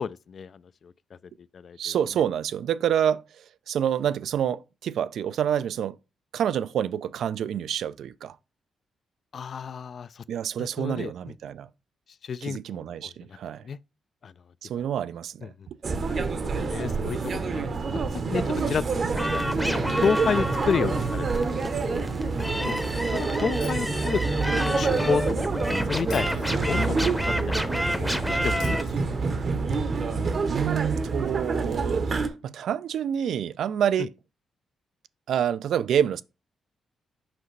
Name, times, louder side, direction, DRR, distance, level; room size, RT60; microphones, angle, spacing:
voice 1, 0.0-2.0 9.3-10.2 10.6-11.3 12.2-13.4 13.6-13.8 14.2-14.3 14.8-14.9 15.4-15.7 16.1-18.0 18.3-22.8 23.1-25.6 25.9-27.0 27.3-27.6 27.8-29.2 34.0-34.1, left 6 dB, 55° left, 0.3 m, -32 dB
voice 2, 1.8-6.0 6.3-8.4 10.3-11.7 12.4-13.6 14.6-15.8 29.8-30.2 30.5-34.1 35.3-36.2, right 9 dB, 75° right, 0.3 m, -28 dB
sound 1, 15.8-32.3, right 4 dB, 50° right, 0.8 m, -27 dB
sound 2, 19.1-28.8, equal, ahead, 0.7 m, -30 dB
Shatter, 23.6-24.6 26.1-27.1 28.6-29.6, left 7 dB, 85° left, 1.1 m, -48 dB
5.8 x 5.1 x 3.2 m
cardioid pair, 95°, 0 cm